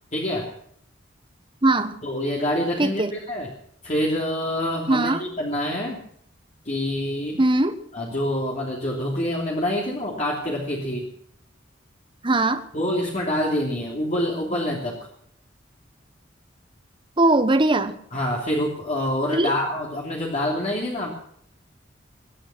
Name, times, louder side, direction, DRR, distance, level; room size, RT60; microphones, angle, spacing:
voice 1, 0.1-0.5 2.0-3.5 3.8-6.0 6.6-7.4 7.9-11.1 12.7-15.1 18.1-21.1, left 1 dB, 40° left, -3 dB, 3.1 m, -26 dB
voice 2, 1.6-2.0 2.8-3.1 4.9-5.2 7.4-7.8 12.2-12.6 17.2-17.9 19.3-19.5, right 2 dB, 25° right, 10 dB, 1.3 m, -20 dB
23.5 x 10.0 x 6.1 m, 0.68 s
head